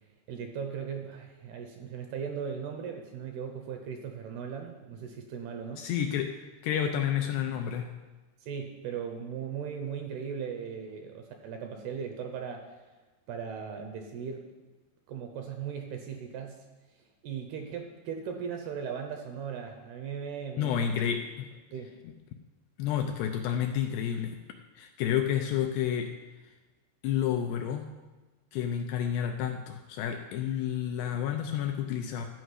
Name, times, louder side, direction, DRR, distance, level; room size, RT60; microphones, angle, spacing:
voice 1, 0.3-5.9 8.4-12.6 13.3-14.5 15.1-16.6 17.2-21.0 21.7-22.0, right 7 dB, 75° right, 4 dB, 2.5 m, -38 dB
voice 2, 5.8-6.3 6.6-7.9 20.6-21.5 22.0-22.1 22.8-24.4 24.8-26.1 27.0-27.9 28.5-32.3, left 9 dB, 80° left, 4 dB, 2.5 m, -30 dB
12.5 x 5.0 x 8.0 m, 1.2 s
omnidirectional pair, 5.2 m